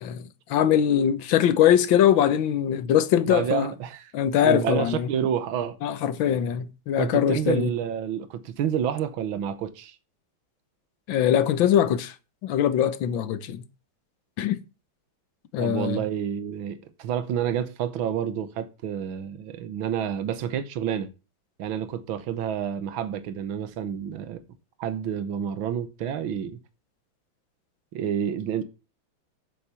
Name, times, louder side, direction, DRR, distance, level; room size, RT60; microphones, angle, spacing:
voice 1, 0.0-3.7 4.1-5.1 5.8-7.7 11.1-12.2 12.4-13.6 14.4-14.6 15.5-16.0, left 10 dB, 75° left, 1.7 m, -22 dB
voice 2, 3.2-4.1 4.4-5.8 7.0-10.0 15.6-21.1 21.6-24.4 24.8-26.6 27.9-28.6, right 9 dB, 80° right, 1.8 m, -29 dB
8.4 x 7.3 x 6.9 m
omnidirectional pair, 2.2 m